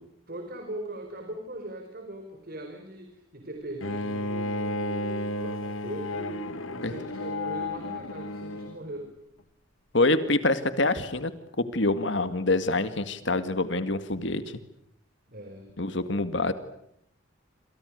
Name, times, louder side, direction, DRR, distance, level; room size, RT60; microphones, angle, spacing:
voice 1, 0.3-9.1 15.3-15.7, right 1 dB, 50° right, 5 dB, 5.1 m, -40 dB
Bowed string instrument, 3.8-8.8, left 2 dB, 90° left, 2.2 m, -32 dB
voice 2, 9.9-11.3 11.7-14.6 15.8-16.5, left 2 dB, 65° left, 11 dB, 2.1 m, -26 dB
28.0 x 28.0 x 6.6 m, 0.74 s
head